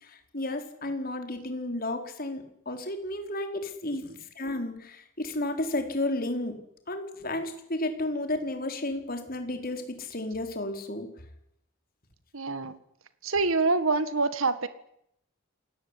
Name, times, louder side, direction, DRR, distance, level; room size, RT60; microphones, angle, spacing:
voice 1, 0.0-4.1 4.4-6.5 6.9-11.1, left 1 dB, 45° left, 6 dB, 4.4 m, -32 dB
voice 2, 12.3-12.8 13.2-14.7, right 3 dB, 75° right, 13 dB, 1.7 m, -26 dB
27.5 x 18.5 x 10.0 m, 0.76 s
head